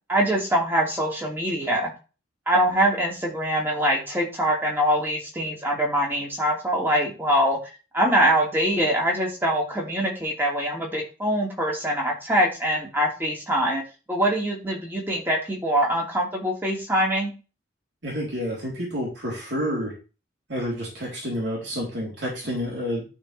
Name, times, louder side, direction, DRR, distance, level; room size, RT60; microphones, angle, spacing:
voice 1, 0.1-1.9 2.5-7.6 7.9-13.8 14.1-17.3, equal, 10° right, -2 dB, 2.6 m, -23 dB
voice 2, 18.0-19.9 20.5-23.1, equal, 60° right, -4 dB, 3.6 m, -29 dB
12.0 x 4.6 x 3.4 m, 0.32 s
head